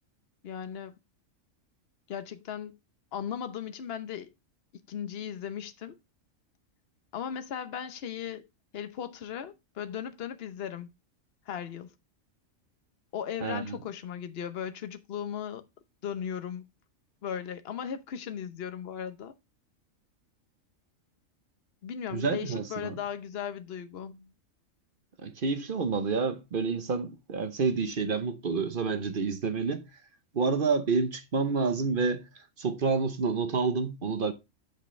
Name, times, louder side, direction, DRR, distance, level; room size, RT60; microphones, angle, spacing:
voice 1, 0.4-1.0 2.1-2.8 3.1-4.3 4.9-6.0 7.1-8.5 8.7-10.9 11.5-11.9 13.1-15.6 16.0-16.6 17.2-19.3 21.8-24.3, left 8 dB, 55° left, 1.0 m, -37 dB
voice 2, 13.4-13.8 22.1-23.0 25.2-29.8 30.3-32.2 32.6-34.3, right 4 dB, 45° right, 0.9 m, -28 dB
8.0 x 6.5 x 3.2 m
omnidirectional pair, 1.4 m